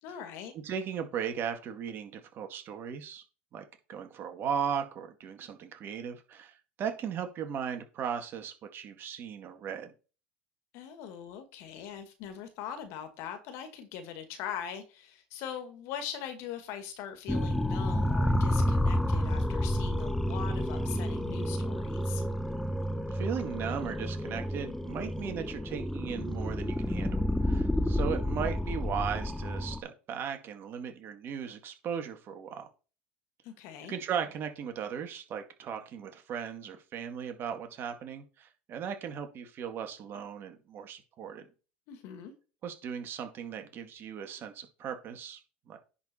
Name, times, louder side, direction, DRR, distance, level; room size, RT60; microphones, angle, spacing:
voice 1, 0.0-0.5 10.7-22.2 33.4-34.0 41.9-42.3, left 8 dB, 65° left, 7 dB, 2.1 m, -41 dB
voice 2, 0.6-3.2 3.5-9.9 23.1-32.7 33.9-41.5 42.6-45.4 45.7-45.8, right 7 dB, 45° right, 6 dB, 2.0 m, -37 dB
sound 1, 17.3-29.8, left 1 dB, 5° left, 0.7 m, -30 dB
10.0 x 4.4 x 4.5 m, 0.34 s
hypercardioid pair, 85°, 5 cm